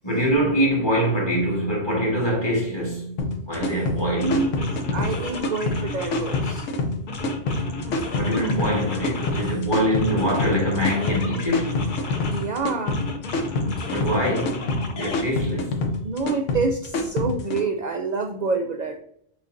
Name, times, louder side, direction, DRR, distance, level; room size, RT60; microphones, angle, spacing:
voice 1, 0.0-3.2 3.5-4.4 8.2-11.9 13.9-15.8, equal, 20° left, 1.7 m, -24 dB
sound 1, 3.2-17.6, left 2 dB, 80° left, 1.1 m, -26 dB
sound 2, 3.6-3.8 4.2-6.7 7.1-9.6 10.0-12.5 12.9-15.2, left 3 dB, 50° left, 0.8 m, -33 dB
voice 2, 4.2-6.7 12.3-13.1 16.0-19.0, right 4 dB, 70° right, 0.4 m, -27 dB
6.2 x 3.1 x 2.6 m
omnidirectional pair, 1.2 m